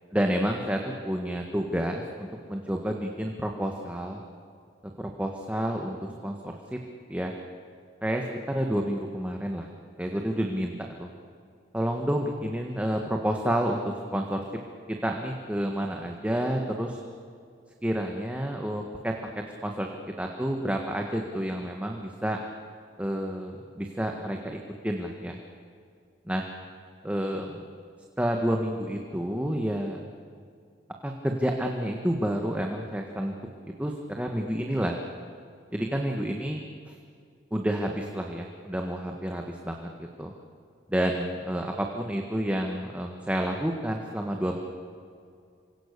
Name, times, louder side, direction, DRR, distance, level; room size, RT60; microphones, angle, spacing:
voice 1, 0.1-4.2 5.0-6.8 7.1-7.3 8.0-9.7 10.0-11.1 11.7-14.4 15.0-17.0 17.8-19.1 19.6-19.9 20.2-22.4 23.0-24.6 24.8-25.4 26.3-26.4 27.0-27.6 28.2-30.0 31.0-33.3 33.8-34.9 35.7-36.9 37.5-40.3 40.9-44.6, equal, 5° right, 2 dB, 1.6 m, -29 dB
28.0 x 25.0 x 6.8 m, 2.4 s
head